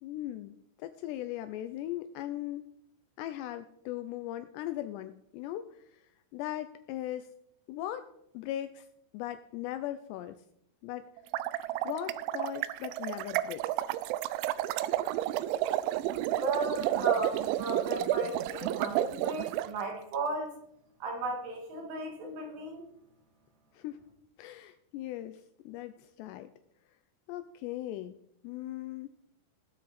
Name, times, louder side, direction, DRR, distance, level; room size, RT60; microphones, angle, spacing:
voice 1, 0.0-2.7 3.2-6.1 6.3-7.3 7.7-8.1 8.3-8.9 9.1-10.4 10.8-11.1 11.8-13.6 23.7-24.0 24.4-26.5 27.3-28.2 28.4-29.1, left 13 dB, 85° left, 11 dB, 2.5 m, -39 dB
sound 1, 11.2-19.7, right 14 dB, 85° right, 2.9 m, -31 dB
voice 2, 16.4-20.5 21.0-22.8, right 2 dB, 65° right, 2 dB, 4.1 m, -35 dB
19.0 x 7.7 x 4.2 m, 0.76 s
omnidirectional pair, 5.3 m